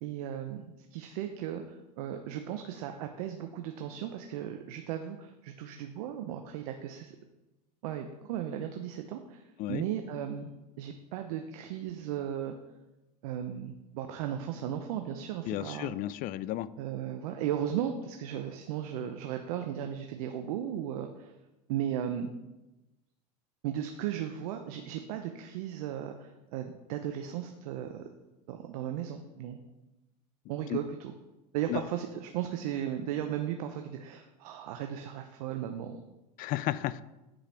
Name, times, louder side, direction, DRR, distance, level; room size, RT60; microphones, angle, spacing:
voice 1, 0.0-7.1 7.8-12.6 13.2-16.0 16.8-21.3 21.7-22.3 23.6-28.0 28.5-29.6 30.5-31.1 31.5-36.0, right 10 dB, 70° right, 5 dB, 0.8 m, -36 dB
voice 2, 15.5-16.7 30.7-30.8 31.7-31.8 36.4-37.0, left 14 dB, 45° left, 17 dB, 0.4 m, -33 dB
8.9 x 5.1 x 5.8 m, 1.0 s
hypercardioid pair, 105°, 20 cm